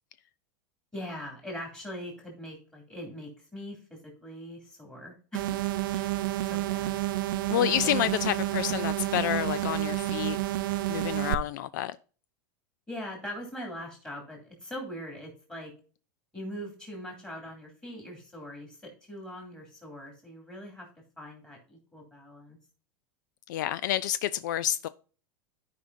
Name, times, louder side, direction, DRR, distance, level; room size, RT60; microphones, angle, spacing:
voice 1, 0.9-5.6 5.9-6.1 6.4-6.9 7.9-8.1 8.4-8.7 12.9-15.7 16.3-20.9 21.2-22.6, equal, 10° left, 2.5 m, -42 dB
sound 1, 5.3-11.3, right 15 dB, 80° right, 0.5 m, -30 dB
voice 2, 7.5-10.4 10.9-12.0 23.5-24.9, left 12 dB, 65° left, 0.3 m, -29 dB
13.5 x 5.0 x 2.6 m
supercardioid pair, 175°, 11 cm